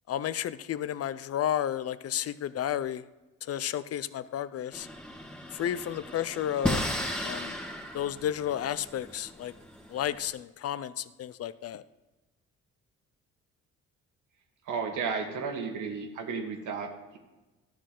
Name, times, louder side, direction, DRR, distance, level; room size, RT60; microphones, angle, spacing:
voice 1, 0.1-3.0 3.4-4.9 5.5-6.9 7.2-7.6 7.9-9.5 9.9-11.8, left 10 dB, 55° left, 16 dB, 0.5 m, -32 dB
sound 1, 4.7-10.2, equal, 5° left, 1.6 m, -35 dB
voice 2, 14.7-17.2, right 5 dB, 80° right, 4 dB, 1.6 m, -33 dB
12.0 x 7.5 x 3.8 m, 1.1 s
cardioid pair, 90°, 30 cm